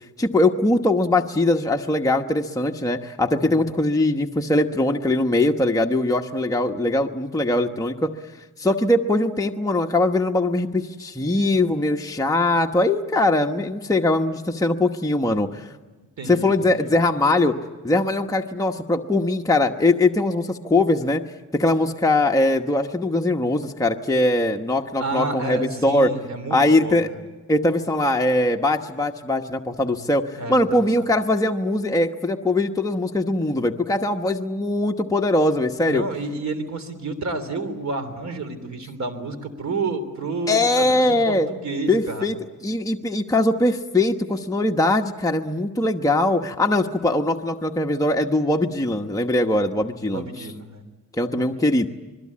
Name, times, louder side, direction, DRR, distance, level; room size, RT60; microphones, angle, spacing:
voice 1, 0.2-8.1 8.6-15.7 16.3-17.5 17.8-21.2 21.5-26.1 26.5-27.1 27.5-36.0 40.5-41.5 41.9-42.4 42.6-50.3 51.1-51.9, left 2 dB, 10° left, 2 dB, 1.1 m, -21 dB
voice 2, 16.2-16.9 25.0-27.0 30.4-30.8 35.9-42.3 50.1-50.8 51.3-51.6, right 3 dB, 60° right, 10 dB, 3.3 m, -30 dB
26.5 x 21.5 x 8.6 m, 1.2 s
wide cardioid pair, 115°, 32 cm